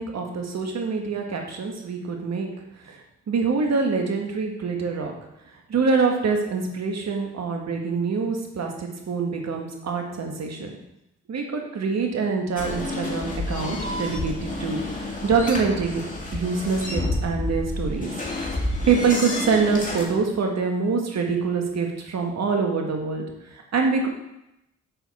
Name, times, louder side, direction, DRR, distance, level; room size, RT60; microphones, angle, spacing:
voice 1, 0.0-2.5 2.8-3.0 3.3-5.1 5.7-10.7 11.3-16.0 16.3-18.1 18.9-23.2 23.5-24.1, right 4 dB, 60° right, 2 dB, 1.5 m, -25 dB
sound 1, 12.6-20.1, left 2 dB, 25° left, 2.4 m, -29 dB
6.6 x 6.4 x 4.2 m, 0.86 s
hypercardioid pair, 45°, 30 cm